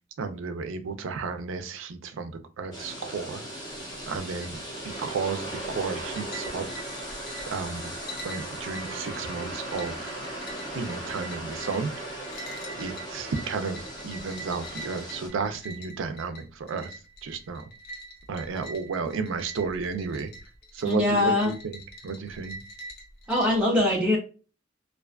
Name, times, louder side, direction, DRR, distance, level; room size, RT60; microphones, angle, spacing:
voice 1, 0.2-3.4 4.1-6.6 7.5-8.0 8.2-10.1 10.7-12.1 12.8-16.9 17.2-17.6 18.3-20.3 20.7-21.8 22.0-22.6, right 5 dB, 75° right, 8 dB, 0.4 m, -33 dB
sound 1, 2.7-15.3, right 1 dB, 20° left, 0.9 m, -37 dB
sound 2, 3.7-23.6, right 1 dB, 55° left, 0.7 m, -45 dB
voice 2, 20.8-21.5 23.3-24.2, left 2 dB, 5° right, -4 dB, 0.5 m, -22 dB
2.4 x 2.3 x 2.2 m, 0.35 s
head